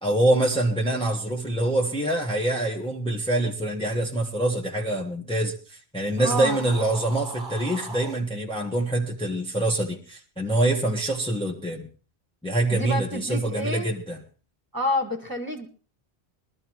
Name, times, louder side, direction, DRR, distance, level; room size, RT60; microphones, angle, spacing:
voice 1, 0.0-11.9 12.4-14.2, right 1 dB, 5° left, 0 dB, 1.4 m, -25 dB
sound 1, 6.1-8.2, right 3 dB, 50° right, 1.2 m, -39 dB
voice 2, 6.2-6.7 12.7-13.9 14.7-15.7, left 1 dB, 20° right, 2 dB, 1.9 m, -28 dB
22.0 x 13.0 x 3.1 m, 0.37 s
omnidirectional pair, 1.1 m